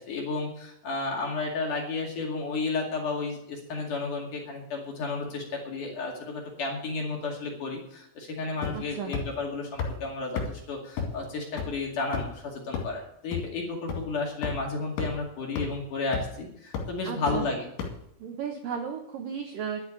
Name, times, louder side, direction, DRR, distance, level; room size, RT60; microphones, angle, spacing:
voice 1, 0.0-17.7, left 3 dB, 50° left, 0 dB, 3.2 m, -32 dB
sound 1, 8.6-8.9 9.1-9.2 9.8-9.9 10.4-10.5 11.0-11.1 11.6-11.7 12.1-12.4 12.7-12.8 13.3-13.4 13.9-14.0 14.4-14.5 15.0-15.1 15.6-15.7 16.1-16.4 16.7-16.8 17.3-17.4 17.8-17.9, left 6 dB, 75° left, 4.6 m, -30 dB
voice 2, 8.7-9.1 17.0-17.5 18.2-19.8, right 7 dB, 75° right, 4 dB, 2.0 m, -34 dB
11.5 x 8.3 x 8.7 m, 0.74 s
omnidirectional pair, 5.6 m